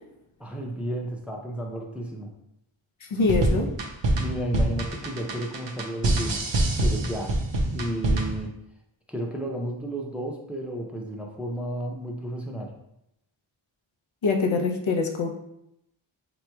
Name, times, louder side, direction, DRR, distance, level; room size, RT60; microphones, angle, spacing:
voice 1, 0.4-2.3 4.2-6.5 6.8-7.3 7.7-8.5 9.1-12.7, right 1 dB, 5° right, 0 dB, 0.5 m, -32 dB
voice 2, 3.1-3.7 14.2-15.3, left 4 dB, 75° left, 1 dB, 0.6 m, -24 dB
sound 1, 3.2-8.5, right 1 dB, 65° right, 0.6 m, -25 dB
3.7 x 2.9 x 2.2 m, 0.81 s
wide cardioid pair, 40°, 49 cm